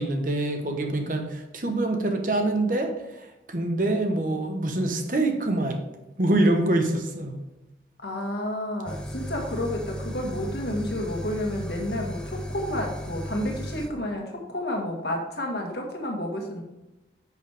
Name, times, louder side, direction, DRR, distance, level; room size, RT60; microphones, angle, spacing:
voice 1, 0.0-5.8 6.2-7.4, right 2 dB, 50° right, 4 dB, 1.2 m, -25 dB
voice 2, 8.0-16.6, left 1 dB, 75° left, 2 dB, 1.7 m, -30 dB
sound 1, 8.9-13.9, equal, 5° left, 0.8 m, -35 dB
10.0 x 6.3 x 3.5 m, 0.99 s
head